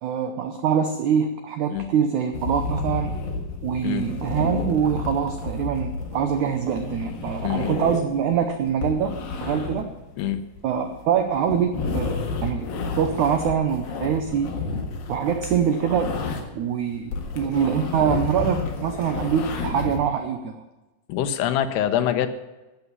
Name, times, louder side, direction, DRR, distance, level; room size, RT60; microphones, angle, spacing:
voice 1, 0.0-3.1 3.6-9.1 9.4-9.9 10.6-12.7 13.0-14.5 15.1-16.1 16.5-20.6, right 8 dB, 85° right, 7 dB, 1.7 m, -24 dB
sound 1, 2.3-16.6 16.9-20.0, left 4 dB, 65° left, 3.3 m, -31 dB
voice 2, 7.4-7.8 10.2-10.4 21.1-22.3, left 10 dB, 85° left, 9 dB, 3.0 m, -24 dB
12.0 x 7.1 x 9.5 m, 1.1 s
omnidirectional pair, 4.6 m